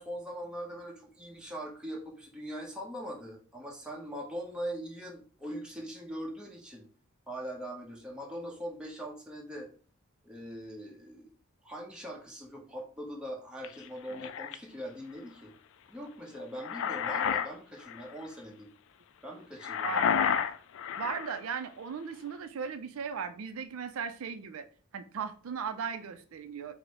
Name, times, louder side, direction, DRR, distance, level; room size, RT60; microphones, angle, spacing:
voice 1, 0.0-6.8 7.3-9.7 10.2-11.3 11.6-15.5 15.9-18.7 19.2-20.0, equal, 5° right, -2 dB, 0.9 m, -41 dB
sound 1, 13.6-14.6 16.3-17.5 17.8-18.1 19.6-21.4, left 7 dB, 60° left, 0.3 m, -30 dB
voice 2, 19.8-20.5 21.0-24.6 24.9-26.7, right 6 dB, 70° right, 9 dB, 0.4 m, -37 dB
4.9 x 2.1 x 4.8 m, 0.41 s
head